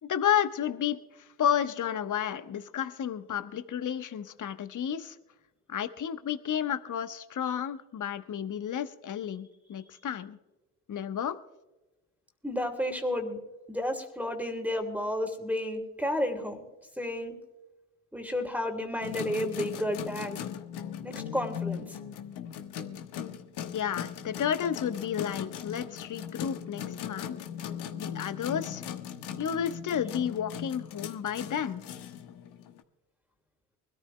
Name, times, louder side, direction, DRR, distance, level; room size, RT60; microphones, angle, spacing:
voice 1, 0.0-1.0 1.4-5.1 5.7-10.4 10.9-11.4 23.7-27.4 27.9-28.8 29.4-31.9, left 9 dB, 40° left, 10 dB, 1.2 m, -31 dB
voice 2, 12.4-13.4 13.7-16.6 17.0-17.3 18.1-20.4 21.0-21.9, left 1 dB, 5° right, 1 dB, 2.9 m, -31 dB
sound 1, 19.0-32.8, left 9 dB, 60° left, 1.4 m, -39 dB
24.5 x 13.5 x 2.2 m, 1.1 s
hypercardioid pair, 50°, 45 cm